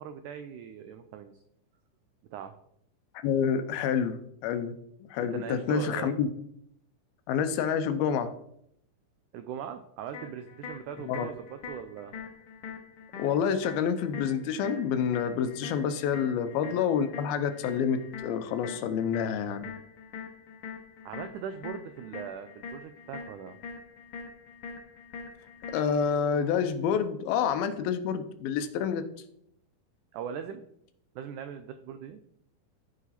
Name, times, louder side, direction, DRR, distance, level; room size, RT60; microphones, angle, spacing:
voice 1, 0.0-1.3 2.3-2.6 5.2-6.1 9.3-12.1 16.2-16.3 21.0-23.6 30.1-30.7 31.2-32.2, right 8 dB, 85° right, 9 dB, 1.7 m, -40 dB
voice 2, 3.2-4.7 5.1-6.3 7.3-8.3 11.1-11.3 13.2-19.7 25.7-29.0, left 7 dB, 80° left, 10 dB, 2.6 m, -28 dB
sound 1, 10.1-26.1, left 5 dB, 65° left, 1.3 m, -44 dB
14.5 x 5.1 x 4.2 m, 0.72 s
omnidirectional pair, 4.3 m